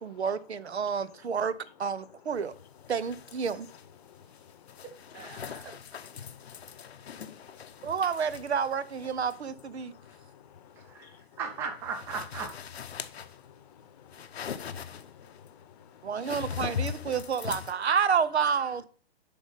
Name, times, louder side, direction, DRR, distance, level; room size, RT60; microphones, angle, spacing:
voice 1, 0.0-1.5 1.8-2.5 2.9-3.7 7.8-9.9 16.0-18.9, right 6 dB, 85° right, 0.7 m, -29 dB
sound 1, 2.3-17.7, left 8 dB, 75° left, 0.7 m, -42 dB
voice 2, 4.0-5.4 6.0-7.9 9.8-11.4 12.9-16.7 17.0-17.1, left 10 dB, 40° left, 0.8 m, -57 dB
voice 3, 5.1-5.8 10.8-12.5, right 6 dB, 10° right, 0.4 m, -38 dB
10.0 x 3.8 x 3.9 m
hypercardioid pair, 135°, 32 cm